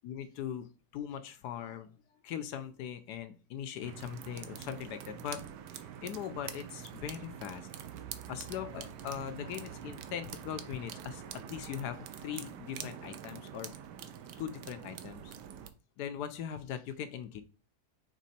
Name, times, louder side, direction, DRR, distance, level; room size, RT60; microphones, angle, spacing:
voice 1, 0.0-1.9 2.2-5.4 5.7-7.7 8.3-11.2 11.5-13.7 14.4-15.3 16.0-17.4, left 9 dB, 80° left, 9 dB, 1.1 m, -40 dB
sound 1, 3.8-15.7, right 9 dB, 90° right, 1.3 m, -45 dB
6.2 x 3.7 x 4.2 m, 0.35 s
omnidirectional pair, 1.8 m